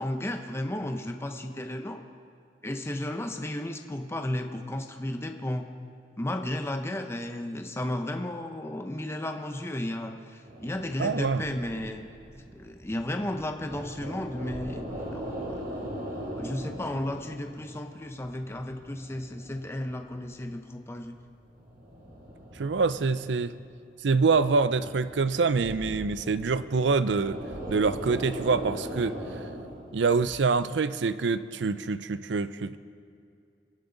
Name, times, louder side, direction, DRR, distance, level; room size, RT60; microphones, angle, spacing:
voice 1, 0.0-2.0 2.6-5.7 6.2-12.0 12.5-15.6 16.3-21.2, left 1 dB, 15° left, 5 dB, 0.7 m, -34 dB
sound 1, 10.4-17.7 18.0-20.4 21.0-23.7 24.2-30.3, equal, 60° right, 3.6 m, -40 dB
voice 2, 11.0-11.4 22.6-23.5 24.0-27.4 27.7-29.2 29.9-32.8, right 4 dB, 80° right, 14 dB, 0.5 m, -25 dB
25.5 x 11.0 x 3.9 m, 2.4 s
head